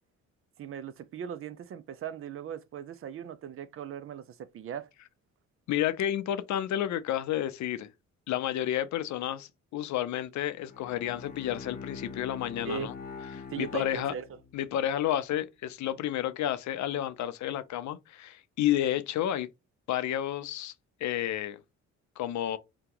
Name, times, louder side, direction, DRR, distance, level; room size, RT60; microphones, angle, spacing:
voice 1, 0.6-4.9 12.6-12.9 13.5-14.2, right 8 dB, 45° right, 0.4 m, -39 dB
voice 2, 5.7-7.9 8.3-12.9 13.3-14.1 14.5-19.5 19.9-20.7 21.0-21.6 22.2-22.6, left 11 dB, 70° left, 0.5 m, -31 dB
Bowed string instrument, 10.6-14.7, left 5 dB, 30° left, 0.8 m, -44 dB
2.8 x 2.2 x 3.7 m
cardioid pair, 90°, 30 cm